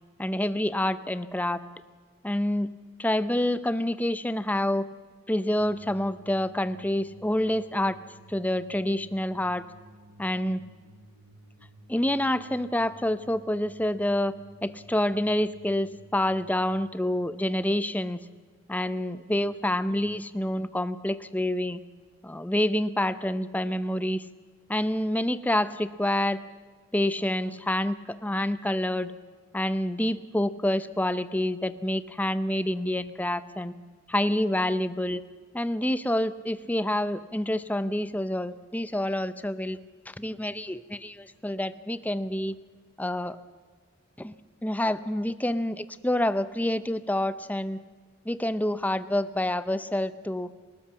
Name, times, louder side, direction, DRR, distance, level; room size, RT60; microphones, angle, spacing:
voice 1, 0.2-1.6 2.2-2.7 3.0-4.9 5.3-8.0 8.3-9.6 10.2-10.6 11.9-14.4 14.6-18.2 18.7-21.8 22.2-24.3 24.7-26.4 26.9-29.1 29.5-33.7 34.1-35.2 35.5-39.8 40.1-42.6 43.0-43.4 44.2-44.3 44.6-47.8 48.2-50.5, left 1 dB, 5° left, 14 dB, 0.6 m, -27 dB
sound 1, 5.6-18.7, right 1 dB, 70° right, 4.8 m, -54 dB
30.0 x 13.0 x 7.3 m, 1.5 s
head